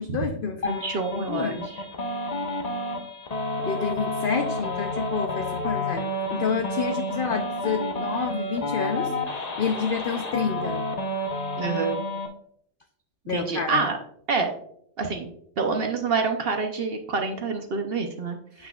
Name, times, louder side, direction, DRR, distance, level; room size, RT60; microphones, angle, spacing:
voice 1, 0.0-0.9 1.2-1.7 3.6-6.0 6.3-9.1 9.6-10.8 13.3-13.9 18.6-18.7, left 6 dB, 75° left, 6 dB, 0.5 m, -29 dB
sound 1, 0.6-12.3, left 1 dB, 35° left, 0.7 m, -30 dB
voice 2, 0.6-1.6 11.6-12.0 13.3-14.0 14.3-14.5 15.0-15.3 15.6-18.7, right 4 dB, 55° right, 4 dB, 0.7 m, -27 dB
8.3 x 5.8 x 2.3 m, 0.68 s
omnidirectional pair, 1.5 m